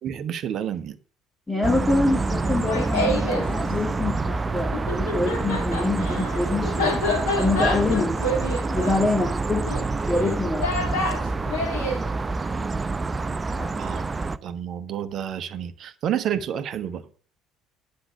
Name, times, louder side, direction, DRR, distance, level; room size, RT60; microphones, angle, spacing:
voice 1, 0.0-0.9 13.8-14.0 14.4-17.0, right 9 dB, 50° right, 1.0 m, -29 dB
voice 2, 1.5-7.0 7.4-8.2 8.7-9.7 10.1-10.7 13.6-13.8, left 2 dB, 15° left, 2.6 m, -25 dB
sound 1, 1.6-14.4, right 3 dB, 25° right, 0.6 m, -27 dB
Laughter, 2.4-3.5 4.7-12.0, left 2 dB, 70° left, 2.4 m, -28 dB
10.5 x 6.5 x 6.8 m
figure-of-eight pair, 55°, 0 cm